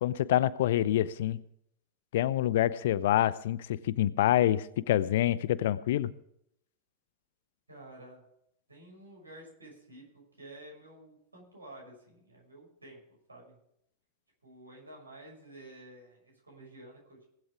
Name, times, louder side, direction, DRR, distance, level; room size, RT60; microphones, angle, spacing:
voice 1, 0.0-1.4 2.1-6.1, left 12 dB, 55° left, 19 dB, 0.6 m, -26 dB
voice 2, 7.7-8.2 8.7-13.6 14.4-17.3, right 1 dB, 80° right, -1 dB, 6.2 m, -51 dB
19.5 x 8.0 x 4.8 m, 0.74 s
figure-of-eight pair, 90°, 0 cm